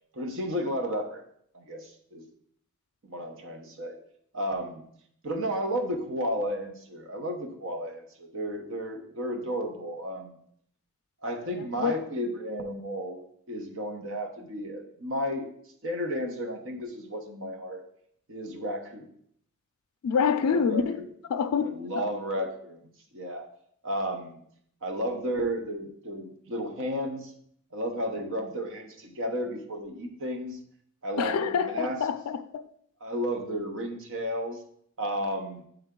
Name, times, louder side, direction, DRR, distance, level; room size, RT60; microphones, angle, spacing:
voice 1, 0.1-1.2 1.5-2.2 3.0-4.0 4.3-4.8 5.2-10.4 11.2-13.2 13.5-15.5 15.8-17.8 18.3-19.1 20.4-21.0 21.6-23.4 23.8-24.4 24.8-27.3 27.7-30.6 31.0-32.0 33.0-34.6 35.0-35.6, equal, 60° right, 0.9 m, -33 dB
voice 2, 11.5-12.0 20.0-21.0 21.3-22.1 31.2-32.6, left 6 dB, 85° left, 0.4 m, -27 dB
7.9 x 3.4 x 3.7 m
head